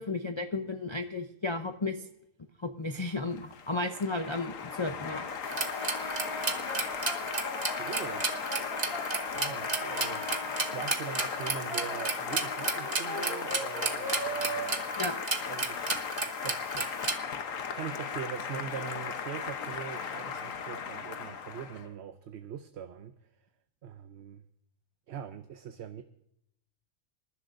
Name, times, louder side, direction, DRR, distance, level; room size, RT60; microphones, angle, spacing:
voice 1, 0.0-2.0 2.6-5.3 15.0-15.2, left 3 dB, 30° left, 6 dB, 0.5 m, -33 dB
Applause, 3.0-21.9, left 6 dB, 80° left, 1.4 m, -37 dB
Brass instrument, 5.0-10.7 11.3-16.1, right 1 dB, 50° left, 6.6 m, -40 dB
sound 1, 5.4-17.2, right 4 dB, 35° right, 1.1 m, -33 dB
voice 2, 7.8-8.2 9.3-15.0 15.5-15.8 16.4-17.3 17.8-23.1 23.8-24.4 25.1-26.0, right 8 dB, 60° right, 9 dB, 0.9 m, -42 dB
25.5 x 11.5 x 2.6 m, 0.77 s
omnidirectional pair, 1.3 m